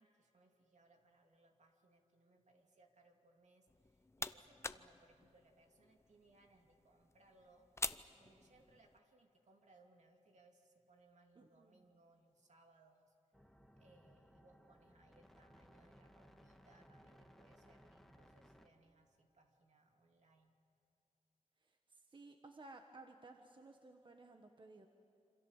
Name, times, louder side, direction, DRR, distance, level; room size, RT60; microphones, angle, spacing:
voice 1, 0.0-7.7 8.2-13.1 13.8-20.5, right 2 dB, 70° right, 2 dB, 2.8 m, -69 dB
sound 1, 3.7-9.0, left 2 dB, 20° left, 0.7 m, -48 dB
voice 2, 11.3-11.9 21.6-24.9, right 2 dB, 40° right, 4 dB, 1.5 m, -58 dB
sound 2, 13.3-18.7, equal, ahead, 1.6 m, -64 dB
27.5 x 26.0 x 7.4 m, 2.5 s
wide cardioid pair, 100°, 13 cm